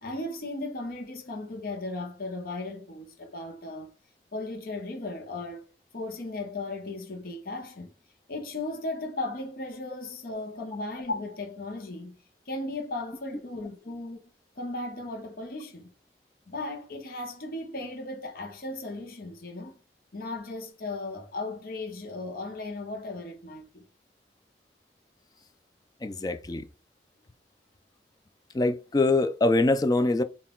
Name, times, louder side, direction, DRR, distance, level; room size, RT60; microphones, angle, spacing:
voice 1, 0.0-3.9 4.3-7.9 8.3-12.2 12.5-14.3 14.6-15.9 16.5-19.8 20.1-23.8, left 2 dB, 55° left, 0.8 m, -36 dB
voice 2, 26.0-26.7 28.5-30.2, left 2 dB, 20° left, 0.3 m, -24 dB
3.9 x 2.4 x 3.7 m
head